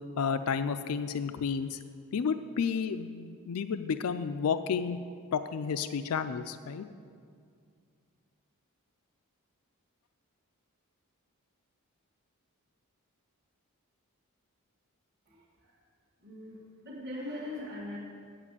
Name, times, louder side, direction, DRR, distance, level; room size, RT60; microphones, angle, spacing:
voice 1, 0.2-1.8 2.1-5.0 5.3-6.8, left 6 dB, 75° left, 10 dB, 0.4 m, -31 dB
voice 2, 16.2-18.0, left 1 dB, 45° right, -6 dB, 1.6 m, -40 dB
8.2 x 7.4 x 8.2 m, 2.2 s
head